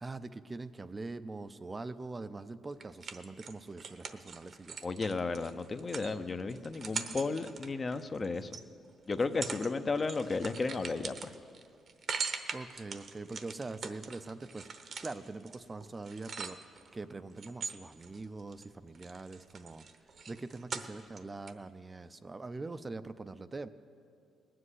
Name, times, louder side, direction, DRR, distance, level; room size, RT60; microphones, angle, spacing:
voice 1, 0.0-4.8 12.5-16.7 16.9-19.9 20.3-23.7, right 3 dB, 25° right, 11 dB, 0.5 m, -43 dB
sound 1, 2.8-8.6 9.1-9.7 10.0-16.9 17.4-18.7 18.9-21.2 21.5-21.6, right 5 dB, 50° right, 0.9 m, -42 dB
voice 2, 4.8-8.5 9.1-11.1, left 3 dB, 35° left, 10 dB, 0.6 m, -33 dB
19.0 x 7.7 x 8.1 m, 2.4 s
cardioid pair, 90°, 0 cm